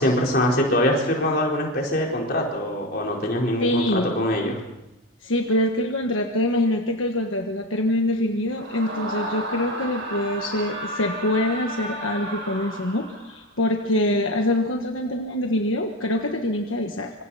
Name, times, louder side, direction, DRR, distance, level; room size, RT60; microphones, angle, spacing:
voice 1, 0.0-4.6, left 1 dB, 45° left, -1 dB, 4.4 m, -23 dB
voice 2, 3.6-4.2 5.2-17.1, left 1 dB, 75° left, 3 dB, 1.5 m, -24 dB
Screaming, 8.5-13.4, right 1 dB, 65° right, 6.4 m, -33 dB
26.0 x 25.0 x 4.3 m, 0.90 s
head